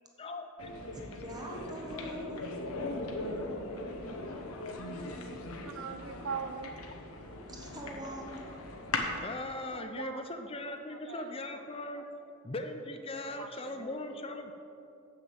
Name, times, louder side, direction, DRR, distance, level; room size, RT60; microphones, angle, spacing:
voice 1, 0.2-0.7 3.1-3.2 5.0-5.3 9.2-12.1 12.4-14.5, left 2 dB, 25° left, 6 dB, 0.5 m, -40 dB
sound 1, 0.6-9.2, left 2 dB, 85° left, 1.1 m, -39 dB
voice 2, 0.9-2.5 7.4-8.5, right 1 dB, 20° right, 0 dB, 1.2 m, -44 dB
voice 3, 5.6-6.8 9.6-10.3 10.6-12.1 13.1-14.2, right 6 dB, 70° right, 9 dB, 0.5 m, -43 dB
7.5 x 6.7 x 7.8 m, 2.7 s
head